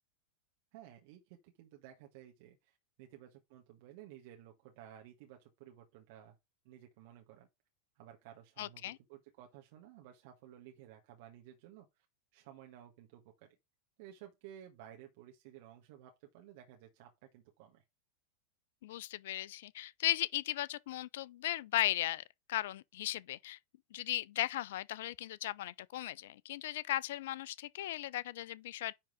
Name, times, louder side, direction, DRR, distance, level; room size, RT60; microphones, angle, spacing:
voice 1, 0.7-6.4 6.6-7.5 7.9-12.0 12.3-13.6 14.0-17.8, right 11 dB, 50° right, 1.4 m, -55 dB
voice 2, 8.6-9.0 18.8-22.2 22.5-23.6 23.9-28.9, left 14 dB, 55° left, 0.4 m, -37 dB
9.9 x 3.8 x 4.9 m
figure-of-eight pair, 90°, 0 cm